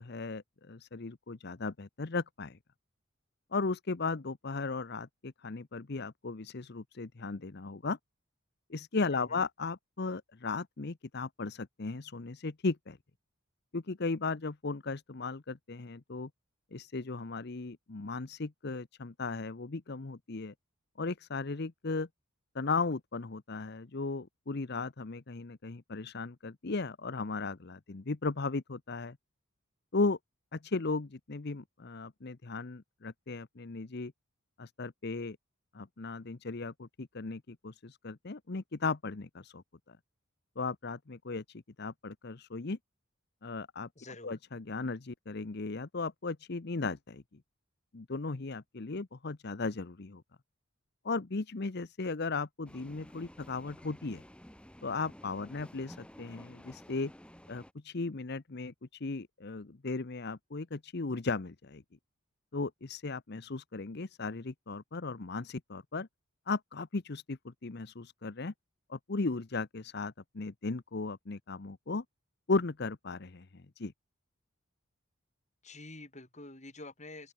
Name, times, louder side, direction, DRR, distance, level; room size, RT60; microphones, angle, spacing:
voice 1, 0.0-2.6 3.5-8.0 8.7-13.0 13.7-16.3 16.7-20.5 21.0-22.1 22.5-29.2 29.9-30.2 30.5-34.1 34.6-35.4 35.7-40.0 40.6-42.8 43.4-43.9 44.2-47.2 47.9-50.2 51.0-54.2 54.8-57.1 57.5-61.8 62.5-66.1 66.5-68.5 68.9-72.0 72.5-73.9, left 3 dB, 50° left, 0.8 m, -36 dB
voice 2, 9.1-9.5 44.0-44.4 75.6-77.3, left 2 dB, 35° left, 4.5 m, -47 dB
sound 1, 52.7-57.7, equal, 5° left, 2.8 m, -53 dB
open air
head